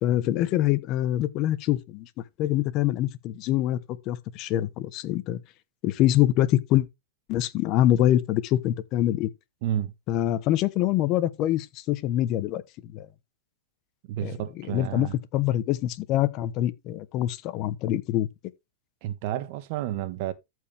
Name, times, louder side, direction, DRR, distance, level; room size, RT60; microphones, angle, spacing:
voice 1, 0.0-2.1 2.4-3.8 4.1-5.4 5.8-6.8 7.3-9.3 10.1-12.6 12.9-13.1 14.2-14.3 14.7-18.3, left 13 dB, 40° left, 1.0 m, -25 dB
voice 2, 9.6-9.9 14.1-15.1 19.0-20.3, right 12 dB, 50° right, 1.2 m, -30 dB
14.0 x 4.7 x 3.5 m
hypercardioid pair, 140°, 0 cm